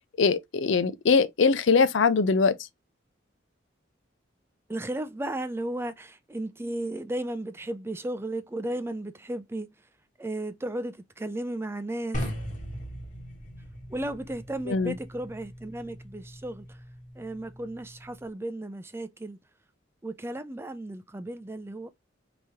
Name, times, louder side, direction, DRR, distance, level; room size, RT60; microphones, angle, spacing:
voice 1, 0.2-2.5 14.7-14.9, left 5 dB, 75° left, 0.5 m, -22 dB
voice 2, 4.7-9.7 10.2-12.2 13.9-16.8 17.2-19.4 20.0-21.9, right 1 dB, 15° right, 0.4 m, -34 dB
sound 1, 12.1-18.3, equal, 40° left, 1.2 m, -39 dB
4.9 x 3.0 x 2.8 m
head